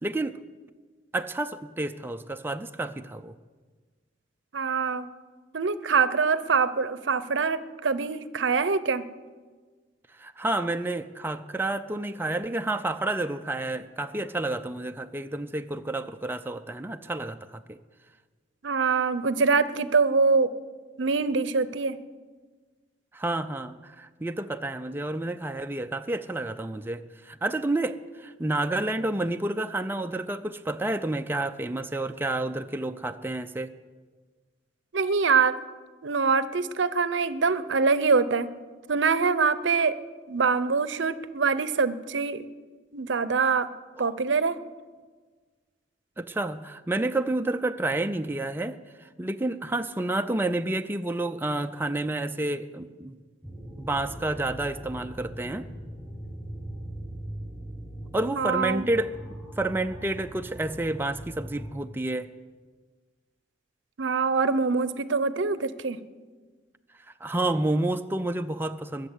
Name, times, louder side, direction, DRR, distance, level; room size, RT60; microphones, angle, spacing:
voice 1, 0.0-0.4 1.1-3.3 10.2-17.8 23.1-33.7 44.0-44.1 46.2-53.2 53.8-55.7 58.1-59.2 59.6-62.3 67.2-69.1, right 2 dB, 10° right, 7 dB, 0.5 m, -30 dB
voice 2, 4.5-5.1 5.5-9.0 18.6-20.5 21.0-22.0 34.9-35.6 36.0-38.5 38.9-39.9 40.3-42.5 42.9-43.7 44.0-44.6 58.4-58.9 64.0-66.0, right 4 dB, 80° right, 14 dB, 0.7 m, -24 dB
sound 1, 53.4-61.7, right 1 dB, 5° left, 4.7 m, -40 dB
21.5 x 7.3 x 8.2 m, 1.4 s
head